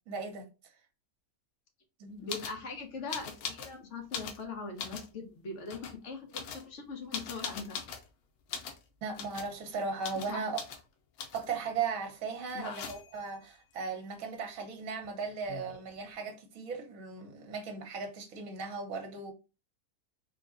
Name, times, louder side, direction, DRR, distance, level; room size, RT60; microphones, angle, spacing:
voice 1, 0.1-0.7 2.0-2.3 9.0-10.6 11.3-19.3, right 5 dB, 65° right, 1.3 m, -37 dB
voice 2, 2.2-7.8 10.2-10.5 12.5-12.8, left 4 dB, 55° left, 1.1 m, -41 dB
sound 1, 2.3-2.6 3.1-3.7 4.0-5.1 5.7-6.0 6.3-8.1 8.5-8.8 9.1-9.5 10.0-10.3 10.6-10.8 11.2-11.6 12.5-13.2 15.0-15.1 15.3-15.9, left 6 dB, 85° left, 1.1 m, -41 dB
3.8 x 2.2 x 3.6 m
omnidirectional pair, 1.6 m